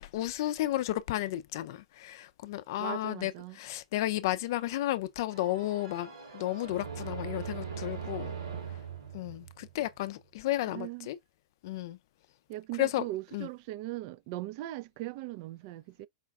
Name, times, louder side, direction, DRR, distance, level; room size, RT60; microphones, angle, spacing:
voice 1, 0.0-8.3 9.1-11.2 11.6-12.0 12.8-13.0 13.3-13.5, left 15 dB, 55° left, 0.4 m, -33 dB
voice 2, 2.8-3.6 10.7-11.1 12.5-16.1, right 17 dB, 50° right, 0.4 m, -39 dB
sound 1, 5.3-10.1, right 7 dB, 80° right, 1.6 m, -41 dB
4.9 x 2.3 x 3.4 m
hypercardioid pair, 105°, 2 cm